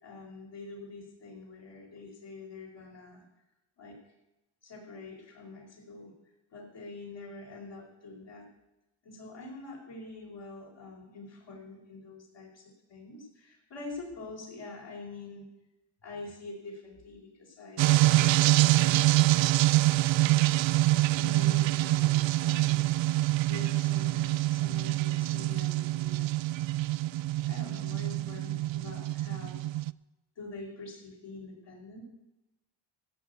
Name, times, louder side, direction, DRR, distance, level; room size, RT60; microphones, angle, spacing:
voice 1, 0.0-3.2 3.8-4.0 4.6-6.1 6.5-8.5 9.0-12.6 12.9-15.5 16.0-18.5 18.8-19.5 19.7-19.9 20.2-20.5 21.1-22.9 23.5-26.5 27.5-29.7 30.4-32.0, left 3 dB, 60° left, -3 dB, 5.3 m, -45 dB
sound 1, 17.8-29.9, right 16 dB, 70° right, 0.5 m, -25 dB
16.0 x 7.2 x 8.5 m, 0.95 s
cardioid pair, 90°, 47 cm